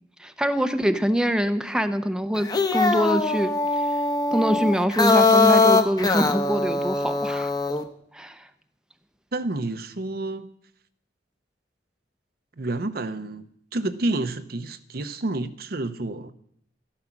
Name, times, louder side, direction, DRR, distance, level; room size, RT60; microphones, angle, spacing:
voice 1, 0.2-3.5 4.3-7.5 8.1-8.4, equal, 5° right, 0.7 m, -24 dB
sound 1, 2.3-7.8, left 3 dB, 20° left, 1.0 m, -21 dB
voice 2, 9.3-10.5 12.6-13.4 13.7-16.3, right 2 dB, 60° right, 0.8 m, -29 dB
13.5 x 11.5 x 6.0 m
head